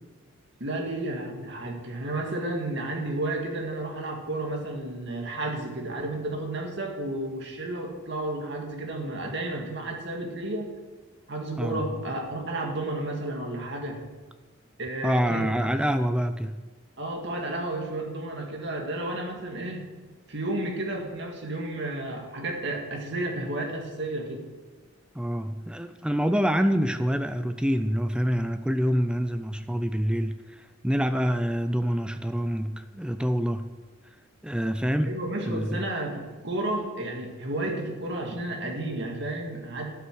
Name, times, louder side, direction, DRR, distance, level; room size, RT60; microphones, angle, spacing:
voice 1, 0.6-10.8 11.3-14.0 14.8-15.5 17.0-19.9 20.3-24.5 35.0-40.0, right 1 dB, 55° right, 1 dB, 2.1 m, -32 dB
voice 2, 15.0-16.6 25.1-33.7 34.4-35.1 35.5-35.8, equal, 5° right, 9 dB, 0.4 m, -26 dB
12.0 x 7.8 x 6.3 m, 1.3 s
head